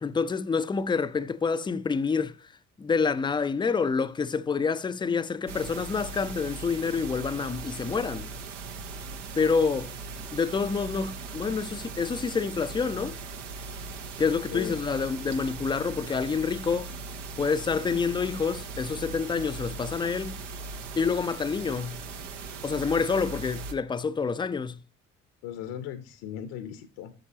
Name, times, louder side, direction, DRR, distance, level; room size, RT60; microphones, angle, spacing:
voice 1, 0.0-2.5 2.8-8.3 9.3-9.9 10.3-13.1 14.2-16.9 17.4-20.4 21.0-22.0 22.6-24.8, left 5 dB, 15° left, 0.5 m, -27 dB
sound 1, 5.5-23.7, right 4 dB, 75° right, 0.8 m, -39 dB
voice 2, 14.5-14.8 25.4-27.1, left 10 dB, 65° left, 0.8 m, -37 dB
8.6 x 6.6 x 2.8 m
figure-of-eight pair, 50°, 37 cm